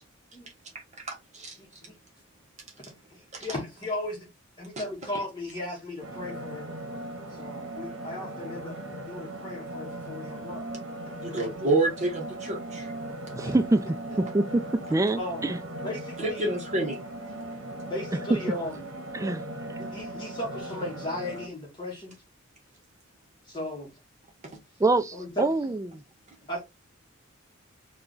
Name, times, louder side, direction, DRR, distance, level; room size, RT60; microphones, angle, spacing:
voice 1, 1.0-1.6 3.3-3.5 11.2-12.9 16.2-17.0, right 2 dB, 35° right, 1.0 m, -28 dB
voice 2, 1.6-1.9 2.8-4.3 4.6-6.7 7.3-10.7 13.4-13.6 15.2-15.4 15.8-16.5 17.8-18.9 19.8-22.1 23.4-23.9 25.1-25.5 26.5-26.6, left 1 dB, 25° left, 1.0 m, -36 dB
sound 1, 6.0-21.5, right 1 dB, 70° right, 0.9 m, -38 dB
voice 3, 13.3-13.9 14.2-14.6 14.9-15.6 18.3-18.4 19.1-19.4 24.8-26.0, right 2 dB, 15° right, 0.3 m, -25 dB
3.1 x 2.3 x 3.8 m
head